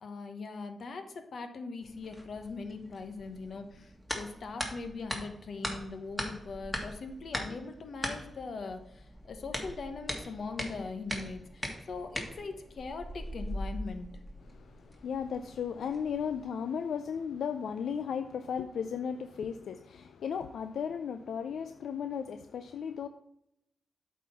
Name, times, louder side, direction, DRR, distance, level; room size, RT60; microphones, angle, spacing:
voice 1, 0.0-14.1, left 4 dB, 65° left, 1.1 m, -41 dB
sound 1, 1.8-16.4, equal, 10° left, 1.6 m, -41 dB
voice 2, 14.5-23.1, left 7 dB, 85° left, 0.4 m, -35 dB
8.2 x 4.3 x 5.7 m
cardioid pair, 90°, 0 cm